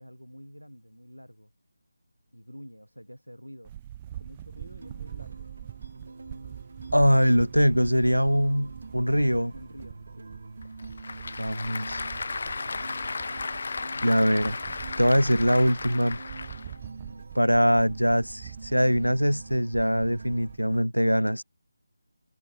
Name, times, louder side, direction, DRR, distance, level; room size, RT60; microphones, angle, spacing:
voice 1, 0.0-1.5 2.3-3.7 4.1-5.5 9.5-10.3 16.6-16.8, equal, 90° left, 6.2 m, -48 dB
sound 1, 3.6-20.8, right 12 dB, 20° right, 2.4 m, -44 dB
sound 2, 4.6-20.6, right 3 dB, 50° right, 5.9 m, -45 dB
voice 2, 6.9-9.5 11.4-12.0 14.0-14.6 15.0-16.2 17.3-21.4, equal, 90° right, 0.9 m, -22 dB
Applause / Crowd, 10.6-16.8, left 4 dB, 45° left, 3.5 m, -35 dB
figure-of-eight pair, 155°, 0 cm